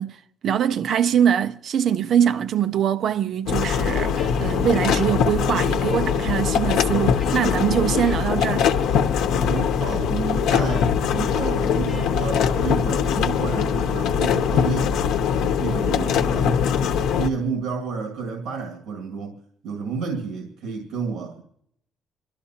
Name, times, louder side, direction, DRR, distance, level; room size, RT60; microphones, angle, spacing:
voice 1, 0.0-8.7, right 9 dB, 50° right, 0.5 m, -23 dB
sound 1, 3.5-17.3, left 7 dB, 90° left, 0.8 m, -22 dB
sound 2, 4.2-5.0 5.5-6.0 6.6-8.2 8.6-9.0 9.3-9.7 10.7-11.2 11.9-12.2, left 2 dB, 30° left, 4.9 m, -46 dB
voice 2, 9.4-15.0 15.6-16.6 17.1-21.4, right 5 dB, 75° right, 2.1 m, -30 dB
27.0 x 12.5 x 2.9 m
cardioid pair, 165°, 0 cm